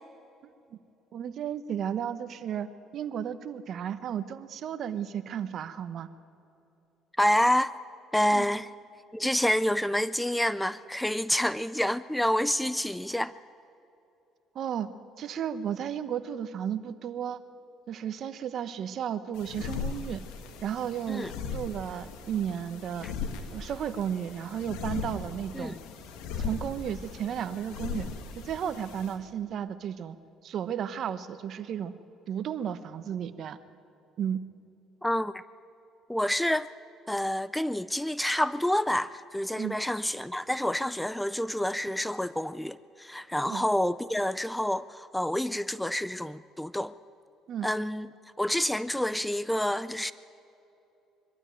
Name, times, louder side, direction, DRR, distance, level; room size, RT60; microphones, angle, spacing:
voice 1, 1.1-6.1 8.3-8.5 14.5-14.9 15.2-17.4 17.9-20.2 20.6-21.2 21.5-23.1 23.5-25.7 26.4-28.1 28.3-30.2 30.4-31.9 32.3-33.6 34.2-34.4 39.6-39.8 43.5-43.6 47.5-47.7, right 9 dB, 55° right, 13 dB, 1.0 m, -33 dB
voice 2, 7.2-7.7 8.1-8.7 9.1-13.3 21.1-21.3 23.0-23.1 25.5-25.8 35.0-35.3 36.1-36.7 37.1-46.9 47.6-48.1 48.4-50.1, left 1 dB, 5° left, 17 dB, 0.4 m, -28 dB
sound 1, 19.3-29.2, left 6 dB, 85° left, 1.9 m, -38 dB
23.0 x 12.5 x 9.0 m, 2.9 s
cardioid pair, 110°, 0 cm